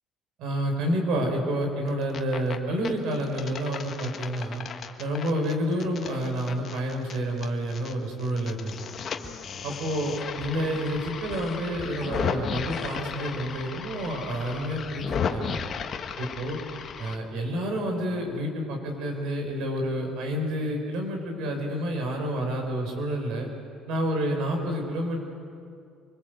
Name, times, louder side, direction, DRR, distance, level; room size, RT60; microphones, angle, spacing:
voice 1, 0.4-4.6 5.0-8.7 9.6-15.6 16.2-16.6 17.0-23.5 23.9-25.2, equal, 75° right, 2 dB, 5.5 m, -29 dB
sound 1, 1.9-2.6 2.9-7.9 8.2-17.2, left 7 dB, 45° left, 1.6 m, -35 dB
sound 2, 9.2-13.0, left 2 dB, 5° left, 2.7 m, -46 dB
26.0 x 20.5 x 8.2 m, 2.4 s
cardioid pair, 100°, 0 cm